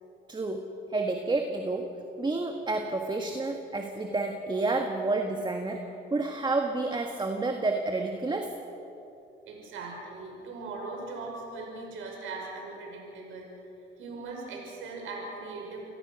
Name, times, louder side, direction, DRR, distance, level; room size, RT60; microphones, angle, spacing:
voice 1, 0.3-0.6 0.9-1.9 2.2-5.8 6.1-8.5, right 3 dB, 25° right, 4 dB, 1.8 m, -29 dB
voice 2, 9.4-13.5 14.0-15.8, right 3 dB, 85° right, 0 dB, 6.0 m, -39 dB
29.0 x 18.0 x 6.4 m, 2.9 s
cardioid pair, 90°, 20 cm